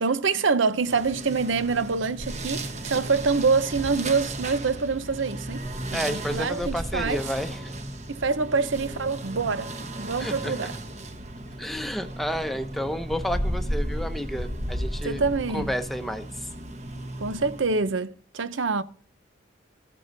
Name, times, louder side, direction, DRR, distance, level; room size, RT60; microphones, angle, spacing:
voice 1, 0.0-5.6 5.9-7.2 8.1-9.7 10.0-10.7 15.0-15.7 17.2-18.8, right 4 dB, 85° right, 0.7 m, -25 dB
sound 1, 0.8-17.9, right 1 dB, 35° right, 1.1 m, -34 dB
voice 2, 5.9-7.6 10.2-10.5 11.6-15.2 15.5-16.3, equal, ahead, 0.8 m, -31 dB
15.0 x 8.5 x 2.7 m
head